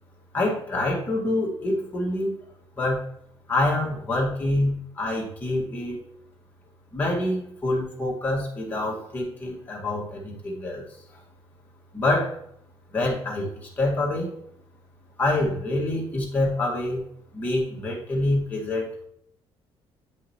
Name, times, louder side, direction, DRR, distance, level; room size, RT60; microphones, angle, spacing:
voice 1, 0.3-2.4 2.8-3.0 3.5-6.0 6.9-10.8 11.1-11.2 11.9-12.4 12.9-14.3 15.2-17.0 17.3-19.1, left 1 dB, 15° left, -3 dB, 2.1 m, -26 dB
9.3 x 5.5 x 2.9 m, 0.71 s
cardioid pair, 165°, 10 cm